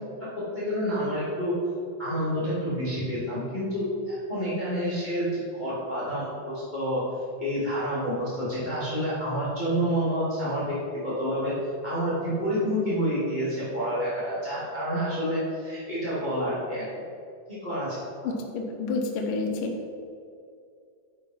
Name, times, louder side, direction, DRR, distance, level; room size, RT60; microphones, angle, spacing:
voice 1, 0.5-1.5 2.0-7.0 7.4-11.5 11.8-16.8 17.5-18.3, equal, 50° left, -9 dB, 0.5 m, -28 dB
voice 2, 18.2-19.7, left 3 dB, 85° left, 0 dB, 1.9 m, -29 dB
10.5 x 5.2 x 5.5 m, 2.4 s
omnidirectional pair, 5.8 m